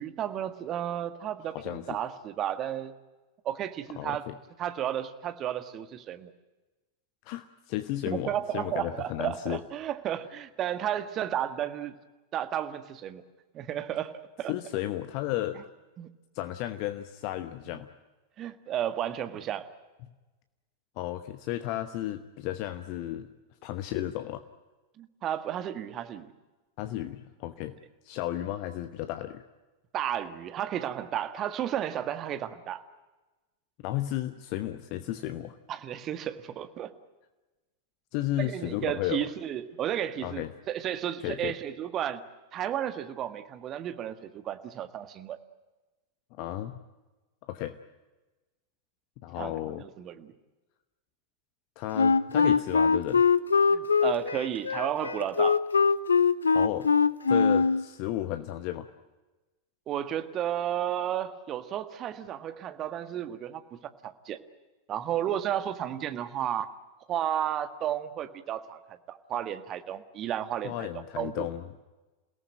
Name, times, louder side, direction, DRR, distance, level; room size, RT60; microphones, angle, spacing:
voice 1, 0.0-2.9 3.4-4.3 4.6-6.3 8.1-12.0 12.3-13.2 13.5-14.1 14.4-14.5 16.0-16.1 18.4-19.7 25.0-26.3 29.9-32.8 35.7-36.9 38.4-42.2 42.5-45.4 49.4-50.3 53.7-55.6 59.9-64.4 64.9-66.7 67.1-68.8 69.1-70.9 71.2-71.5, right 10 dB, 30° right, 10 dB, 1.7 m, -33 dB
voice 2, 1.5-2.0 4.0-4.4 7.2-9.6 14.5-15.6 16.3-17.9 21.0-23.3 23.6-24.4 26.8-27.7 28.0-29.4 33.8-35.6 38.1-39.3 40.2-40.5 41.2-41.5 46.4-46.8 47.5-47.8 49.2-49.8 51.8-53.2 56.5-56.9 57.3-58.9 70.6-71.6, left 14 dB, 45° left, 10 dB, 1.0 m, -33 dB
Wind instrument woodwind instrument, 51.9-57.8, left 5 dB, 75° left, 0.8 m, -22 dB
28.5 x 18.0 x 9.0 m, 1.2 s
figure-of-eight pair, 90°, 0 cm